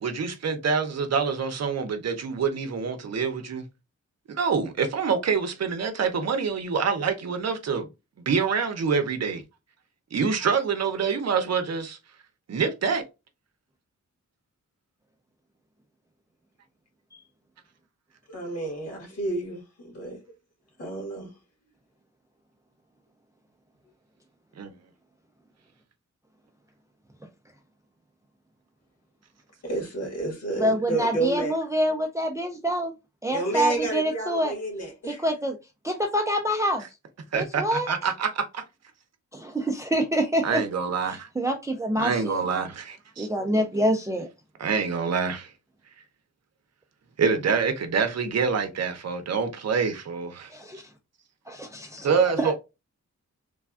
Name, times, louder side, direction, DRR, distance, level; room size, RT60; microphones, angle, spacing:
voice 1, 0.0-3.6 4.3-7.9 8.3-9.4 10.1-12.0 12.5-13.0 24.6-24.7 37.3-38.6 40.4-41.3 42.0-43.3 44.6-45.5 47.2-50.5 52.0-52.5, right 5 dB, 60° right, 0.6 m, -26 dB
voice 2, 18.3-20.2 20.8-21.3 29.6-31.5 33.3-35.2, right 2 dB, 55° left, 1.6 m, -30 dB
voice 3, 30.6-32.9 33.2-34.5 35.1-35.6 35.8-36.8 37.4-37.9 39.3-40.6 41.4-42.4 43.2-44.3 50.5-50.8 51.5-52.1 52.4-52.5, equal, 10° right, 0.4 m, -26 dB
3.3 x 2.3 x 2.3 m
wide cardioid pair, 175°, 30 cm